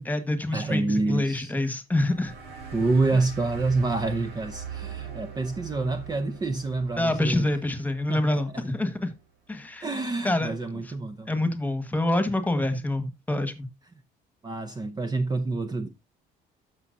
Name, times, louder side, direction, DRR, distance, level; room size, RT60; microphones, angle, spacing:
voice 1, 0.0-2.3 7.0-9.1 9.5-9.9 10.2-10.8 11.3-13.7, left 1 dB, 10° left, 1.7 m, -26 dB
voice 2, 0.5-1.5 2.7-7.5 8.1-8.6 9.8-11.3 14.4-15.9, right 3 dB, 25° right, 0.9 m, -27 dB
sound 1, 2.1-9.2, right 7 dB, 75° right, 3.5 m, -41 dB
13.0 x 6.1 x 2.7 m
cardioid pair, 110°, 17 cm